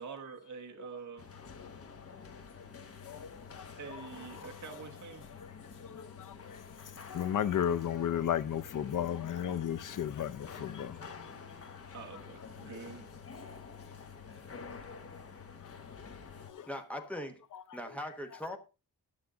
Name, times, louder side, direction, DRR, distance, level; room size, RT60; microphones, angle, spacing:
voice 1, 0.0-1.3 3.8-5.2 11.9-13.1, right 5 dB, 50° right, 1.2 m, -46 dB
sound 1, 1.2-16.5, left 5 dB, 40° left, 1.2 m, -48 dB
voice 2, 5.8-6.6 7.1-10.9 16.5-16.7, left 9 dB, 55° left, 0.6 m, -33 dB
voice 3, 16.7-17.4 17.7-18.6, left 1 dB, 5° left, 1.2 m, -40 dB
12.0 x 7.0 x 3.8 m
wide cardioid pair, 160°, 38 cm